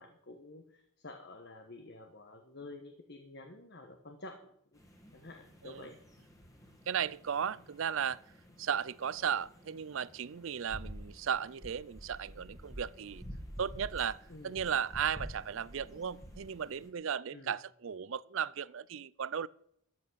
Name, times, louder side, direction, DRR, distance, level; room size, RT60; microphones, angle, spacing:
voice 1, 0.0-4.8 5.1-6.0 14.3-14.6 17.3-17.6, left 2 dB, 50° left, 1.3 m, -50 dB
sound 1, 4.8-16.9, equal, 15° left, 1.9 m, -50 dB
voice 2, 6.9-8.2 8.6-13.2 13.6-19.5, right 8 dB, 60° right, 0.5 m, -35 dB
13.5 x 8.3 x 6.3 m
head